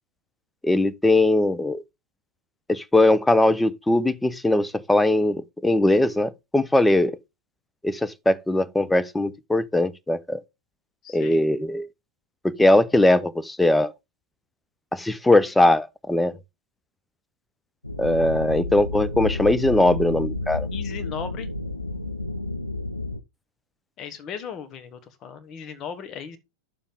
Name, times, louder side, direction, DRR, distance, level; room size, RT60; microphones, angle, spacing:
voice 1, 0.6-1.8 2.7-7.2 7.8-10.4 11.1-11.9 12.4-13.9 14.9-16.3 18.0-20.7, left 1 dB, 5° left, 0.7 m, -20 dB
voice 2, 11.0-11.4 20.7-21.5 24.0-26.4, left 7 dB, 35° left, 1.8 m, -37 dB
sound 1, 17.8-23.2, left 2 dB, 85° left, 0.7 m, -30 dB
9.8 x 7.1 x 3.7 m
figure-of-eight pair, 90°, 0 cm